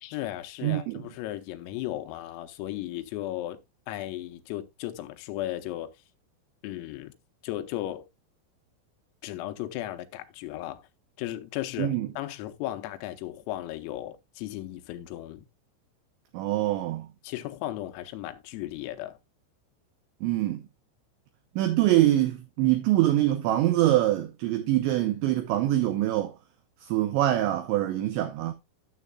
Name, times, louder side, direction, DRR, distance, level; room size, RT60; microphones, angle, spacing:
voice 1, 0.0-3.6 3.9-5.9 6.6-7.1 7.4-8.1 9.2-10.8 11.2-15.5 17.2-19.2, left 14 dB, 90° left, 3.5 m, -35 dB
voice 2, 0.6-1.0 11.8-12.1 16.3-17.1 20.2-20.6 21.6-26.3 26.9-28.5, right 14 dB, 80° right, 2.7 m, -24 dB
13.0 x 7.3 x 2.3 m
omnidirectional pair, 5.9 m